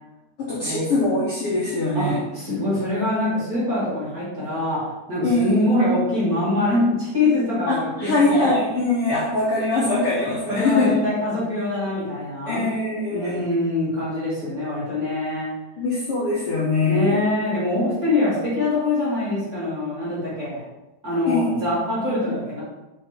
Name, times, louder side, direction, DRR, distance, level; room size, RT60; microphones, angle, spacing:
voice 1, 0.4-2.2 5.2-5.8 7.7-10.9 12.5-13.4 15.8-17.2 21.3-21.6, left 2 dB, 80° left, -7 dB, 1.3 m, -22 dB
voice 2, 1.9-8.5 10.5-12.6 13.1-15.5 16.8-20.6 21.0-22.6, left 2 dB, 30° right, -9 dB, 2.2 m, -24 dB
5.3 x 5.0 x 4.4 m, 1.0 s
omnidirectional pair, 4.5 m